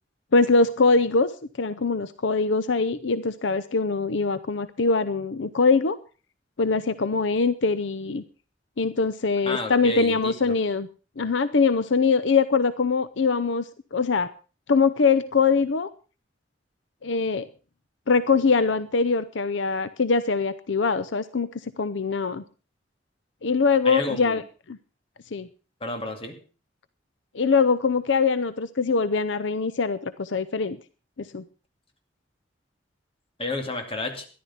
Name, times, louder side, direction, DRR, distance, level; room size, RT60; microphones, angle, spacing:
voice 1, 0.3-1.3 1.6-6.0 6.6-8.2 8.8-10.9 11.2-13.6 13.9-14.3 14.7-15.9 17.0-17.5 18.1-21.5 21.8-22.4 23.4-24.4 24.7-24.8 25.3-25.5 27.3-30.8 31.2-31.4, left 4 dB, 80° left, 14 dB, 0.7 m, -22 dB
voice 2, 9.4-10.6 23.8-24.4 25.8-26.4 33.4-34.3, left 2 dB, 30° left, 5 dB, 2.5 m, -31 dB
13.5 x 11.5 x 5.7 m, 0.37 s
head